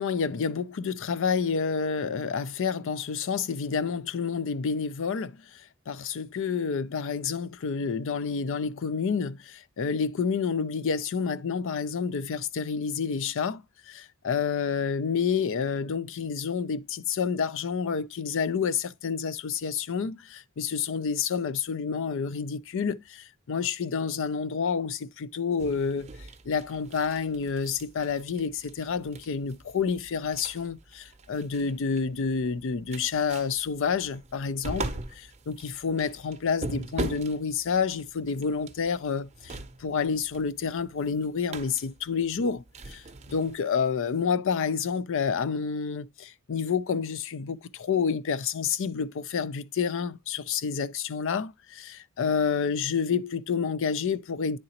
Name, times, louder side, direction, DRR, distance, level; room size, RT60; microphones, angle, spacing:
voice 1, 0.0-26.1 26.5-34.8 35.5-43.0 43.3-54.6, left 6 dB, 60° left, 0.4 m, -29 dB
sound 1, 25.6-43.6, right 2 dB, 30° right, 0.7 m, -41 dB
9.7 x 3.9 x 2.8 m
head